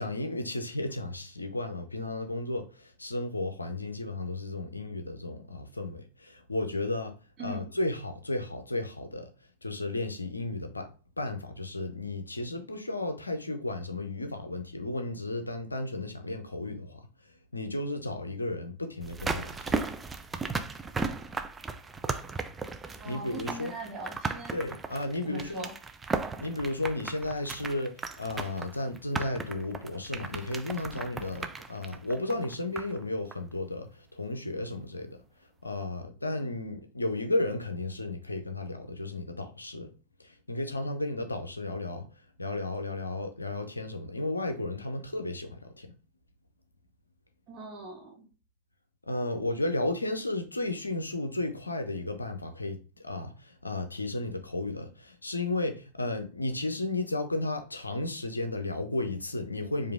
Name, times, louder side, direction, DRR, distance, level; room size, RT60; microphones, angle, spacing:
voice 1, 0.0-7.1 7.4-9.3 9.6-10.9 11.2-17.0 17.5-19.7 23.0-23.8 24.5-25.7 26.4-35.2 35.6-39.9 40.2-42.1 42.4-45.9 49.1-59.9, left 2 dB, 80° left, 0.6 m, -33 dB
sound 1, 19.0-33.0 33.3-33.4, right 4 dB, 15° right, 0.4 m, -36 dB
voice 2, 23.0-24.6 25.2-25.7 47.5-48.3, right 2 dB, 30° right, 1.1 m, -41 dB
4.8 x 2.6 x 3.5 m
figure-of-eight pair, 90°, 0 cm